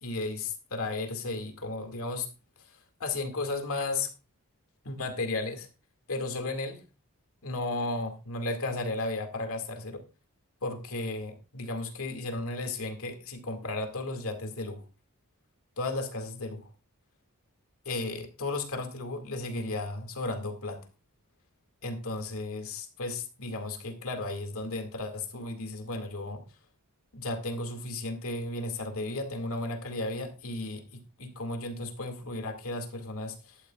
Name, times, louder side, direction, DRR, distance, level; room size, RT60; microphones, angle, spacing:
voice 1, 0.0-2.3 3.0-4.1 4.8-5.7 6.1-6.8 7.4-10.0 10.6-14.8 15.8-16.7 17.9-20.9 21.8-26.4 27.1-30.8 31.2-33.6, left 2 dB, 65° left, 6 dB, 2.2 m, -34 dB
13.0 x 12.0 x 2.4 m, 0.30 s
head